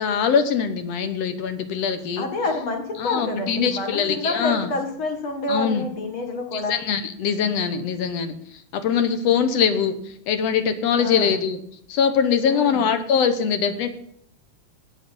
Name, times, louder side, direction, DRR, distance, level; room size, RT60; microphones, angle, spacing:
voice 1, 0.0-2.3 3.0-4.7 5.5-5.8 6.5-8.4 8.7-10.0 10.3-11.6 11.9-13.9, left 7 dB, 65° left, 10 dB, 2.0 m, -22 dB
voice 2, 2.2-6.7 11.0-11.4 12.5-12.8, left 2 dB, 50° left, 3 dB, 2.4 m, -28 dB
18.5 x 6.9 x 5.4 m, 0.67 s
omnidirectional pair, 3.3 m